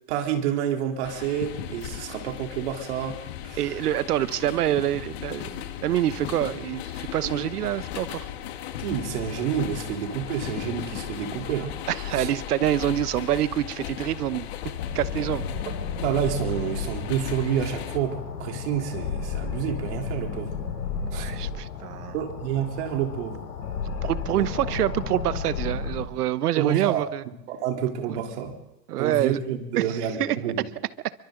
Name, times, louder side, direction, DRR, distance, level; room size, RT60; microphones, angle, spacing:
voice 1, 0.1-3.2 3.4-3.6 7.2-7.4 8.8-11.7 12.1-12.3 16.0-18.1 18.4-20.5 21.1-21.3 22.1-23.4 24.3-24.7 26.6-27.0 27.5-28.5 29.0-30.6, right 9 dB, 45° right, 2 dB, 3.6 m, -29 dB
sound 1, 1.0-18.0, left 11 dB, 40° left, 1.6 m, -36 dB
voice 2, 3.6-8.3 11.9-14.5 14.9-15.4 21.1-22.1 24.0-27.2 28.1-28.2 28.9-29.4 29.7-30.4, right 12 dB, 70° right, 15 dB, 1.1 m, -26 dB
sound 2, 14.8-26.1, left 5 dB, 90° left, 4.3 m, -33 dB
28.5 x 24.0 x 3.9 m, 0.87 s
supercardioid pair, 170°, 47 cm